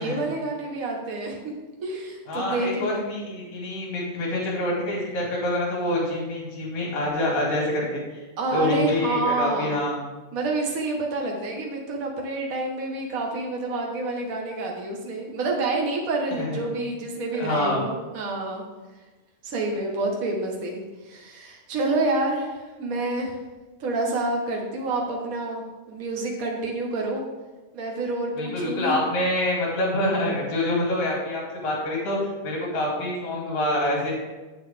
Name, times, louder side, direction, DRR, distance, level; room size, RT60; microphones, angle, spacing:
voice 1, 0.0-1.5 1.8-3.0 8.4-9.8 10.3-18.7 19.4-23.3 23.8-27.2 27.7-29.0, right 2 dB, 50° right, 0 dB, 1.1 m, -28 dB
voice 2, 2.3-8.2 8.5-10.0 16.3-16.7 17.4-17.8 28.4-32.2 32.4-34.1, left 1 dB, 70° left, -3 dB, 3.7 m, -26 dB
8.1 x 7.9 x 3.5 m, 1.2 s
omnidirectional pair, 3.4 m